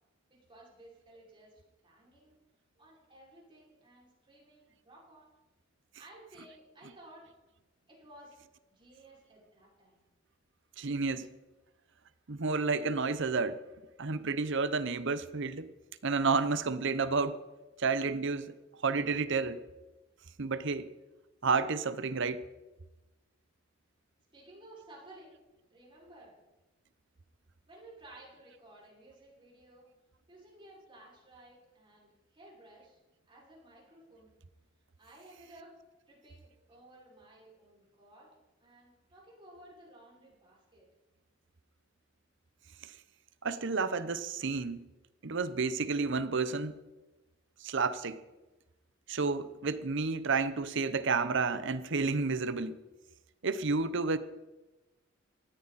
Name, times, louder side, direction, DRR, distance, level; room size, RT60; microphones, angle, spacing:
voice 1, 0.3-2.4 2.8-5.3 6.0-7.3 7.9-8.4 8.7-10.0 24.3-25.4 25.7-26.4 27.7-29.9 30.3-33.0 33.2-34.3 35.0-35.8 36.1-38.3 38.6-40.9, right 1 dB, 25° right, -5 dB, 5.7 m, -56 dB
voice 2, 10.8-11.3 12.3-13.6 14.0-15.7 16.0-17.4 17.8-18.5 18.8-19.6 20.4-20.9 21.4-22.4 42.8-42.9 43.4-44.8 45.2-46.7 47.6-48.2 49.1-52.8 53.4-54.2, right 4 dB, 65° right, 13 dB, 0.9 m, -30 dB
18.5 x 14.0 x 4.2 m, 1.1 s
head